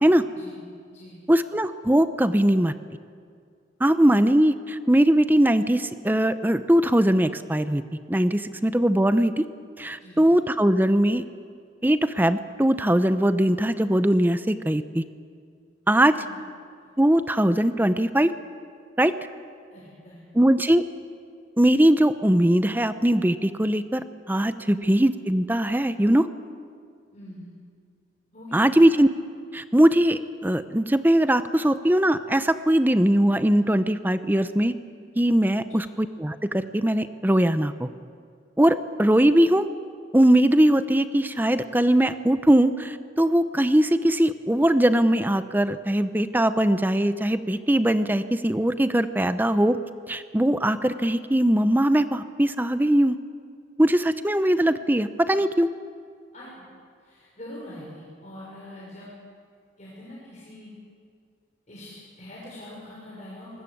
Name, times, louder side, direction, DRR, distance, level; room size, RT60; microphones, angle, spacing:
voice 1, 1.3-2.7 3.8-7.8 8.1-9.5 9.8-11.2 11.8-15.0 15.9-16.1 17.0-18.3 19.0-19.1 20.3-20.8 21.6-26.3 28.5-29.1 29.5-34.7 35.2-37.9 38.6-39.7 40.1-49.8 50.1-53.2 53.8-55.7, right 1 dB, 10° right, 11 dB, 0.7 m, -21 dB
voice 2, 16.1-16.4 16.8-16.9 19.7-20.2 24.7-24.9 27.1-27.5 28.3-28.7 56.3-56.7 57.0-59.2 59.8-60.7 61.7-63.6, left 1 dB, 40° left, -6 dB, 5.9 m, -43 dB
24.5 x 20.0 x 8.6 m, 2.2 s
head